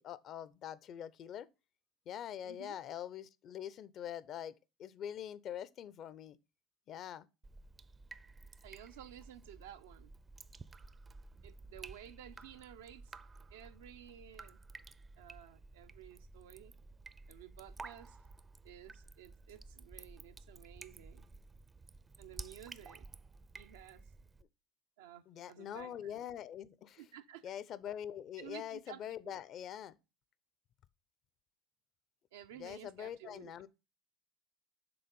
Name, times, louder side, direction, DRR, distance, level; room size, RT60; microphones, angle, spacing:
voice 1, 0.0-1.5 2.1-4.5 4.8-6.4 6.9-7.3 25.3-27.0 27.4-30.0 32.5-33.7, left 10 dB, 55° left, 0.5 m, -44 dB
voice 2, 2.4-2.8 8.6-10.1 11.4-13.2 13.5-14.6 15.2-16.7 17.3-18.2 18.6-21.3 22.2-23.1 23.5-24.0 25.0-26.3 27.0-27.4 28.4-29.3 32.3-33.5, right 11 dB, 85° right, 0.6 m, -53 dB
Drip, 7.4-24.4, right 3 dB, 25° right, 0.5 m, -53 dB
6.8 x 3.6 x 5.3 m
hypercardioid pair, 85°, 0 cm